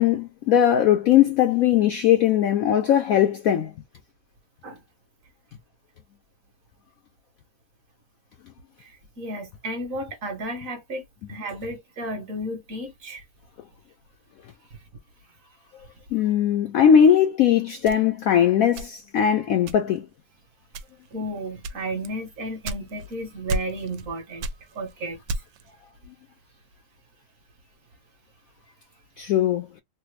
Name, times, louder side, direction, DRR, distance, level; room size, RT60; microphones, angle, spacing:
voice 1, 0.0-3.7 16.1-20.1 29.2-29.7, left 9 dB, 90° left, 0.7 m, -19 dB
voice 2, 8.8-13.2 14.7-14.8 21.1-25.4, right 1 dB, 50° right, 1.2 m, -33 dB
sound 1, 17.8-19.2 19.7-20.1 20.7-21.1 21.6-23.1 23.5-24.1 24.4-25.7, right 2 dB, 80° right, 1.3 m, -32 dB
3.2 x 2.0 x 3.1 m
omnidirectional pair, 2.0 m